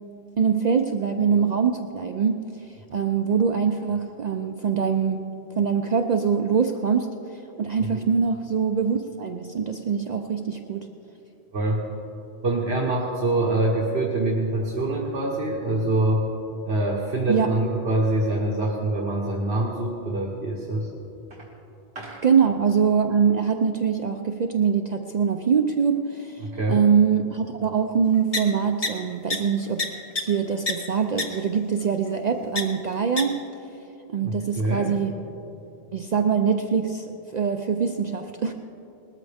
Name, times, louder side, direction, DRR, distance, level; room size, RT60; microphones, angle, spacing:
voice 1, 0.4-2.4 2.7-5.2 5.6-10.9 17.3-17.5 22.2-29.8 30.2-33.4 34.1-35.1 35.9-37.1 37.3-38.5, right 6 dB, 50° right, 5 dB, 0.6 m, -23 dB
voice 2, 11.5-11.8 12.4-16.3 16.7-20.9 21.3-21.5 21.9-22.2 26.4-26.8 34.2-34.9, right 2 dB, 75° right, -3 dB, 1.5 m, -25 dB
sound 1, 28.3-28.4 28.8-28.9 29.3-29.4 29.8-29.9 30.2-30.3 30.7-30.8 31.2-31.3 32.6-32.7 33.2-33.3, left 3 dB, 35° left, 1.2 m, -24 dB
20.0 x 13.0 x 3.5 m, 3.0 s
omnidirectional pair, 1.1 m